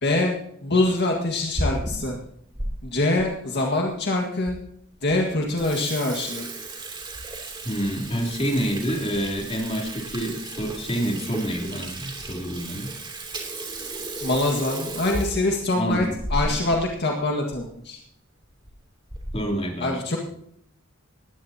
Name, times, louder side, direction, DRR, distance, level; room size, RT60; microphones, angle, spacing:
voice 1, 0.0-0.3 0.6-2.2 2.8-4.6 5.0-6.5 14.2-18.0 19.8-20.2, left 2 dB, 55° left, 1 dB, 1.8 m, -24 dB
Water tap faucet / Sink (filling or washing), 1.5-2.7 3.2-3.3 4.0-4.1 4.5-4.6 4.9-5.1 5.4-16.8 17.1-17.2 17.5-17.6 18.4-18.7 19.1-19.5, right 1 dB, 25° right, 3.0 m, -34 dB
voice 2, 7.6-12.9 15.7-16.2 16.4-16.5 19.3-20.0, equal, 30° left, 0 dB, 3.2 m, -27 dB
20.0 x 15.5 x 2.9 m, 0.71 s
head